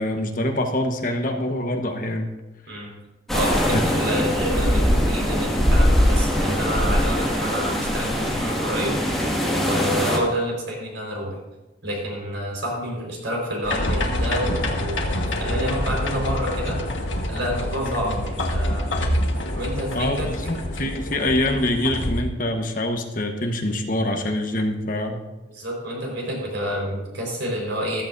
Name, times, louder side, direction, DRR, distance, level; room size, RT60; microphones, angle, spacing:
voice 1, 0.0-2.3 3.7-4.2 17.8-18.1 19.9-25.2, left 1 dB, 45° left, 4 dB, 1.2 m, -25 dB
sound 1, 3.3-10.2, equal, ahead, 2.0 m, -21 dB
voice 2, 3.3-8.9 9.5-11.4 11.8-16.8 17.3-18.9 19.5-20.3 25.5-28.0, equal, 70° right, -1 dB, 4.6 m, -28 dB
sound 2, 13.6-22.2, left 1 dB, 75° left, 1.6 m, -26 dB
14.5 x 13.5 x 2.7 m, 1.1 s
head